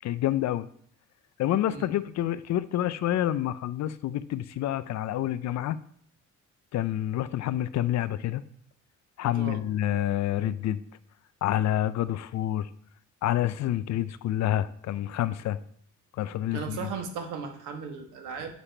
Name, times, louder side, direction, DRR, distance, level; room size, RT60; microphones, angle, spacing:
voice 1, 0.0-0.7 1.4-5.8 6.7-8.4 9.2-10.8 11.4-12.7 13.2-15.6 16.2-16.9, left 12 dB, 65° left, 15 dB, 0.5 m, -28 dB
voice 2, 16.5-18.5, right 6 dB, 90° right, 5 dB, 1.2 m, -36 dB
7.0 x 5.0 x 4.4 m, 0.65 s
cardioid pair, 90°, 30 cm